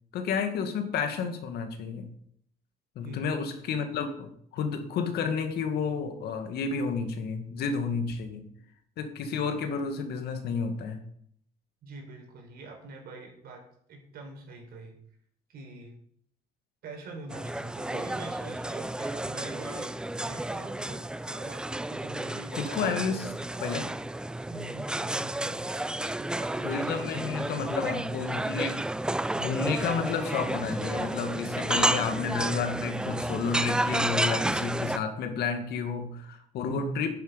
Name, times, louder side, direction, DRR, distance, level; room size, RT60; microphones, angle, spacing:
voice 1, 0.1-2.1 3.0-8.4 9.0-11.0 22.5-23.3 23.6-23.9 26.6-37.1, left 5 dB, 70° left, 7 dB, 1.9 m, -31 dB
voice 2, 3.0-3.6 11.8-13.6 13.9-15.0 15.5-16.0 16.8-23.0 24.5-25.7 26.2-27.6 36.7-37.1, right 2 dB, 65° right, 2 dB, 4.5 m, -44 dB
sound 1, 17.3-35.0, right 1 dB, 5° right, 0.3 m, -31 dB
10.5 x 9.4 x 5.2 m, 0.66 s
cardioid pair, 110°, 17 cm